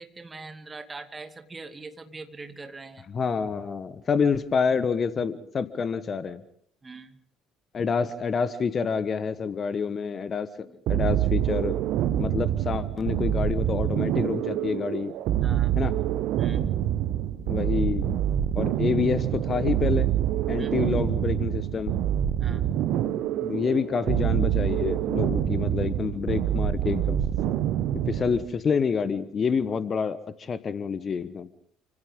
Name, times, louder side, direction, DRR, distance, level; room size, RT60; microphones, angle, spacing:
voice 1, 0.0-3.1 6.8-7.2 10.7-10.8 15.4-15.7 16.4-16.7 20.6-20.8 22.4-22.7, right 3 dB, 20° right, 6 dB, 2.4 m, -42 dB
voice 2, 3.1-6.4 7.7-11.7 12.2-15.1 15.8-15.9 17.4-18.1 18.5-20.1 20.5-21.9 23.4-27.2 28.1-31.5, left 6 dB, 35° left, 14 dB, 1.2 m, -27 dB
sound 1, 10.9-28.5, right 11 dB, 55° right, 1.3 m, -26 dB
29.5 x 26.0 x 3.7 m, 0.68 s
figure-of-eight pair, 55°, 0 cm